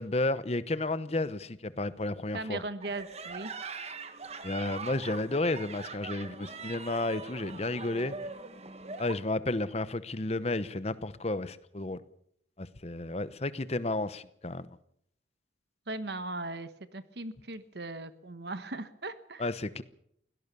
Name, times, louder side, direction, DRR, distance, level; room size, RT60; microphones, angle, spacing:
voice 1, 0.0-2.6 4.4-8.2 9.0-12.0 12.6-14.8 19.4-19.8, left 2 dB, 35° left, 0.9 m, -32 dB
voice 2, 2.3-3.5 15.9-19.5, right 2 dB, 60° right, 1.2 m, -38 dB
sound 1, 2.8-9.1, right 4 dB, 35° right, 1.5 m, -42 dB
22.0 x 17.5 x 6.9 m
head